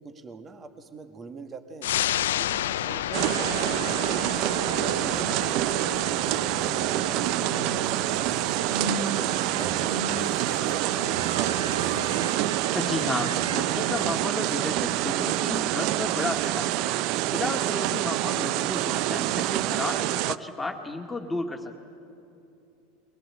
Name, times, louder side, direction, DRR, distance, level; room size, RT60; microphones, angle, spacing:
voice 1, 0.0-1.9 2.4-4.2 4.6-7.5 7.9-11.5 17.2-17.5, right 4 dB, 30° right, 8 dB, 1.7 m, -44 dB
sound 1, 1.8-12.8 13.2-13.3, left 12 dB, 80° left, 0.5 m, -34 dB
sound 2, 3.1-20.4, right 15 dB, 55° right, 0.5 m, -27 dB
sound 3, 4.5-14.1, right 4 dB, 90° right, 1.4 m, -35 dB
voice 2, 12.7-16.9 17.2-21.8, left 2 dB, 10° left, 2 dB, 2.1 m, -33 dB
24.0 x 18.0 x 8.8 m, 2.9 s
hypercardioid pair, 95°, 0 cm